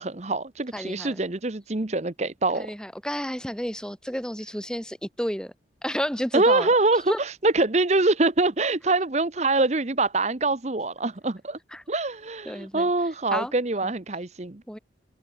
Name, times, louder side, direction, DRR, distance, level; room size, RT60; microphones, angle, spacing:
voice 1, 0.0-2.7 6.3-11.6 11.9-14.6, right 2 dB, 35° right, 1.0 m, -24 dB
voice 2, 0.7-1.2 2.6-5.5 5.8-6.7 7.1-7.2 11.7-11.8 12.5-12.9 13.3-13.5 13.8-13.9 14.7-14.8, equal, 5° left, 3.9 m, -31 dB
open air
head